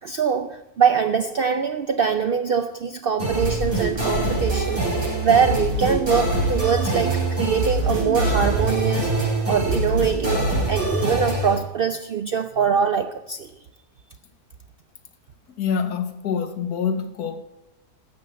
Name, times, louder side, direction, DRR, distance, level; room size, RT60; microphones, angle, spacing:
voice 1, 0.0-13.5, right 6 dB, 65° right, 0.5 m, -23 dB
sound 1, 3.2-11.5, right 2 dB, 40° right, 5.7 m, -23 dB
voice 2, 15.5-17.4, left 6 dB, 90° left, 1.6 m, -26 dB
12.0 x 7.8 x 7.5 m
omnidirectional pair, 1.6 m